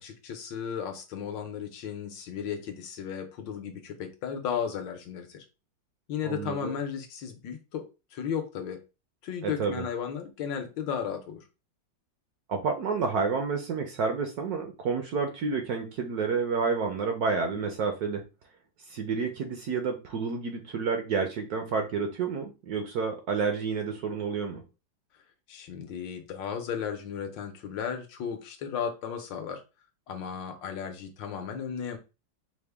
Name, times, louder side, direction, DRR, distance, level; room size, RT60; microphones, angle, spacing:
voice 1, 0.0-5.4 6.1-8.8 9.2-11.4 25.5-29.6 30.1-32.0, left 7 dB, 80° left, 5 dB, 1.4 m, -35 dB
voice 2, 6.2-6.7 9.4-9.8 12.5-18.2 18.9-24.6, right 5 dB, 70° right, 5 dB, 0.9 m, -29 dB
4.8 x 2.1 x 3.3 m, 0.29 s
omnidirectional pair, 2.1 m